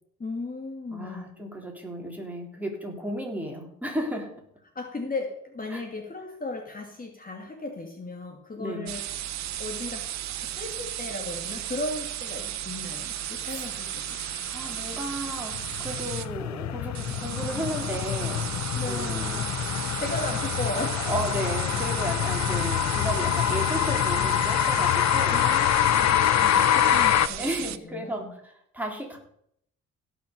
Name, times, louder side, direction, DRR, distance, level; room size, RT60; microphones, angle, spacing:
voice 1, 0.2-1.3 4.7-9.0 9.6-14.1 18.7-19.5 20.0-21.0 25.3-27.4 27.8-28.4, left 2 dB, 30° left, 2 dB, 2.4 m, -36 dB
voice 2, 0.9-4.3 5.7-5.8 8.5-8.9 13.4-13.8 14.5-18.5 18.8-19.4 19.9-20.0 21.0-25.4 27.3-29.2, right 1 dB, 5° right, 0 dB, 3.9 m, -34 dB
sound 1, 8.9-16.3 16.9-27.8, right 12 dB, 65° right, 0.8 m, -34 dB
sound 2, 14.5-27.3, left 12 dB, 65° left, 0.7 m, -25 dB
16.5 x 6.2 x 6.8 m, 0.70 s
cardioid pair, 90°, 30 cm